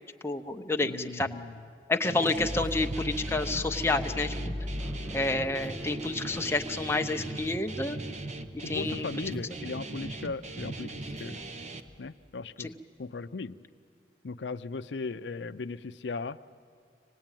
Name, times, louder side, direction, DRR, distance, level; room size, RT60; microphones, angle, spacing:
voice 1, 0.2-1.3 1.9-4.3 5.1-8.0 8.7-9.1 12.6-12.7, left 2 dB, 15° left, 5 dB, 0.8 m, -29 dB
voice 2, 0.8-1.6 8.6-11.4 12.0-13.6 14.2-16.4, left 4 dB, 75° left, 11 dB, 0.5 m, -38 dB
Guitar, 2.0-11.8, right 2 dB, 40° right, 0.9 m, -39 dB
sound 1, 2.2-8.8, left 1 dB, 15° right, 1.3 m, -39 dB
sound 2, 5.5-5.7 6.3-7.0 7.3-7.6 8.2-8.9 9.2-9.4 10.0-10.7 11.0-11.2 11.8-12.0, left 1 dB, 80° right, 7.0 m, -56 dB
25.0 x 19.0 x 9.0 m, 2.3 s
head